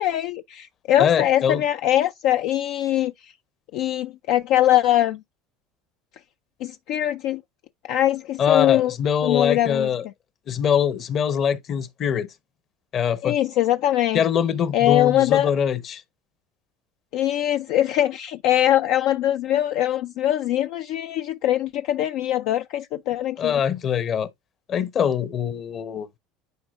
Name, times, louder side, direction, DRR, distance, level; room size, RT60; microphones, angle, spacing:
voice 1, 0.0-3.3 3.7-5.2 6.6-7.4 7.9-8.9 9.2-9.9 13.2-14.2 14.7-15.5 17.1-23.6, left 12 dB, 65° left, 0.3 m, -22 dB
voice 2, 1.0-1.6 8.4-10.0 10.5-12.3 12.9-13.4 14.1-16.0 23.4-24.3 24.7-26.1, left 8 dB, 45° left, 0.8 m, -23 dB
9.6 x 4.1 x 2.5 m
supercardioid pair, 100°, 0 cm